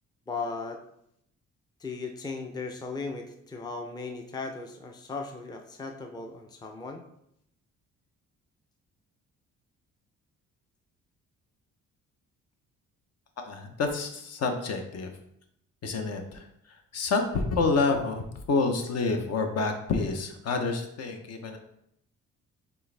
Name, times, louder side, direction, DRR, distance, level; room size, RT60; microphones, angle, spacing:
voice 1, 0.3-0.8 1.8-7.0, left 4 dB, 15° left, 4 dB, 0.5 m, -37 dB
voice 2, 13.4-15.1 15.8-16.5 16.9-21.6, left 3 dB, 55° left, 5 dB, 0.8 m, -28 dB
4.5 x 3.5 x 3.3 m, 0.75 s
cardioid pair, 90°, 30 cm